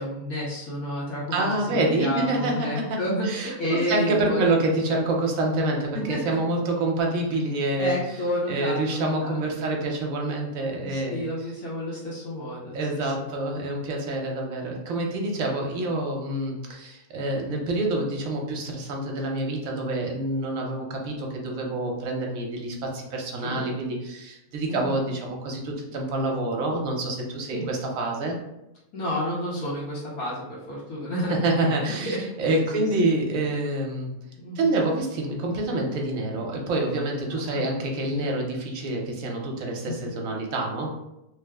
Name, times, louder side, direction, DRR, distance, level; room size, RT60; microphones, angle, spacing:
voice 1, 0.0-4.6 4.9-5.0 5.9-6.2 7.8-9.6 10.8-13.1 14.9-15.3 23.4-23.6 24.7-25.0 27.5-27.7 28.9-33.1 34.4-34.7 37.3-37.7 38.1-38.3 39.9-40.0, left 1 dB, 70° left, -6 dB, 1.2 m, -31 dB
voice 2, 1.3-7.9 8.5-11.2 12.7-28.4 31.3-34.1 34.5-40.9, right 2 dB, 65° right, 0 dB, 1.0 m, -27 dB
3.1 x 2.0 x 3.4 m, 0.89 s
omnidirectional pair, 1.7 m